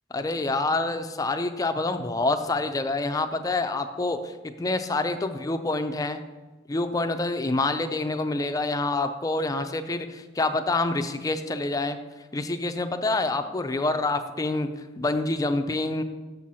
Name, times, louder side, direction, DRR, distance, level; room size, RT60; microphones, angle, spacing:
voice 1, 0.1-6.2 6.7-12.0 12.3-14.7 15.0-16.0, left 2 dB, 20° left, 7 dB, 0.4 m, -27 dB
6.8 x 4.2 x 6.1 m, 1.2 s
head